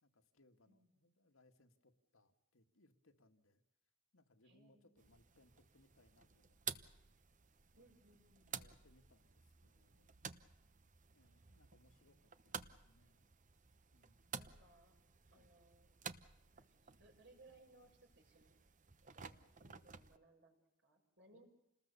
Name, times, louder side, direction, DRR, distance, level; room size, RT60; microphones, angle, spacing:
voice 1, 0.0-3.6 4.1-6.9 7.7-8.0 8.4-10.2 11.1-13.3 13.9-14.3 15.3-15.6 21.3-21.4, left 2 dB, 80° left, 7 dB, 1.9 m, -72 dB
voice 2, 4.4-5.1 7.8-8.8 11.9-12.4 14.3-15.0 15.3-16.0 16.5-18.6 19.0-21.5, right 2 dB, 60° right, 3 dB, 6.0 m, -67 dB
sound 1, 5.0-20.2, right 7 dB, 40° right, 0.9 m, -53 dB
28.5 x 20.0 x 6.9 m, 0.87 s
head